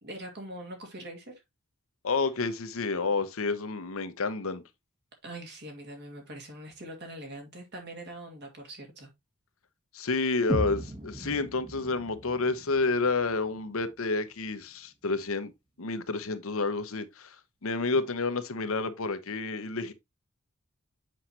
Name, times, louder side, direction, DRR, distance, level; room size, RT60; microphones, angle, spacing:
voice 1, 0.0-1.4 5.2-9.1, right 1 dB, 50° right, 2.3 m, -43 dB
voice 2, 2.0-4.6 9.9-15.5 15.8-17.3 17.6-19.9, left 3 dB, 65° left, 0.9 m, -29 dB
sound 1, 10.5-14.5, right 1 dB, 20° right, 1.2 m, -37 dB
7.7 x 5.6 x 2.9 m
head